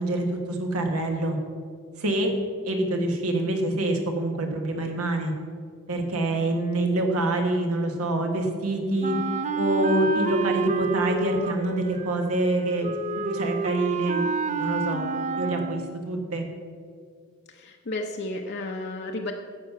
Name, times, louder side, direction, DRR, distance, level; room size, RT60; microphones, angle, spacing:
voice 1, 0.0-1.4 2.0-2.3 2.6-5.3 5.9-9.1 9.6-12.9 13.2-14.3 14.6-15.0 15.4-16.4, right 2 dB, 85° right, 3 dB, 1.6 m, -26 dB
Wind instrument woodwind instrument, 9.0-16.0, right 3 dB, 35° right, 0.5 m, -29 dB
voice 2, 17.5-19.3, left 2 dB, 50° left, 1 dB, 0.8 m, -32 dB
11.5 x 7.6 x 5.8 m, 2.1 s
head